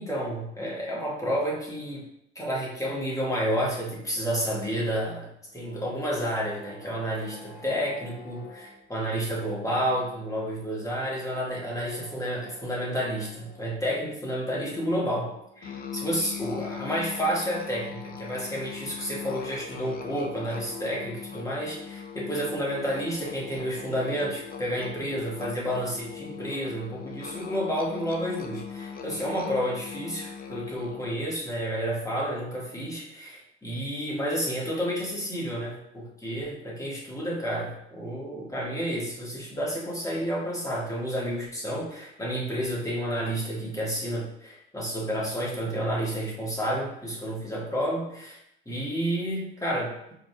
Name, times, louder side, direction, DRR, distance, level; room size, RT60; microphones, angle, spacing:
voice 1, 0.0-2.1 2.4-48.4 48.7-50.1, equal, 10° left, -4 dB, 1.7 m, -30 dB
sound 1, 5.4-16.6, right 1 dB, 75° left, 1.1 m, -51 dB
Musical instrument, 15.6-31.2, left 7 dB, 30° left, 0.6 m, -40 dB
4.9 x 4.0 x 2.3 m, 0.78 s
figure-of-eight pair, 50°, 30 cm